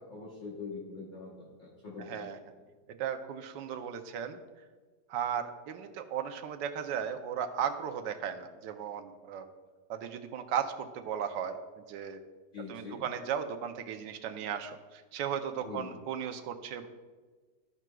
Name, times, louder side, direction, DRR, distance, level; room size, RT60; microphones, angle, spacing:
voice 1, 0.1-2.3 12.5-13.0 15.6-15.9, left 4 dB, 45° left, -4 dB, 1.3 m, -43 dB
voice 2, 2.1-2.4 3.0-4.4 5.1-9.5 9.9-12.2 12.7-16.9, right 8 dB, 85° right, 7 dB, 1.3 m, -36 dB
13.0 x 6.0 x 2.2 m, 1.4 s
omnidirectional pair, 1.9 m